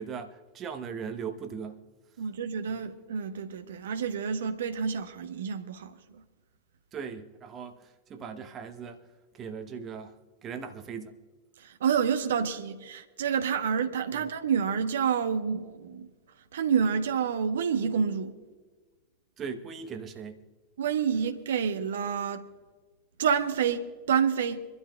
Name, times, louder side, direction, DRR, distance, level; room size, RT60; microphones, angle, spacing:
voice 1, 0.0-1.8 2.7-2.8 6.9-9.0 9.3-10.1 10.4-11.2 14.1-14.3 19.4-20.4, right 6 dB, 30° right, 0.9 m, -39 dB
voice 2, 2.2-6.2 11.6-16.1 16.5-18.3 20.8-22.4 23.2-24.7, right 7 dB, 60° right, 1.0 m, -28 dB
26.5 x 12.5 x 2.3 m
figure-of-eight pair, 90°, 0 cm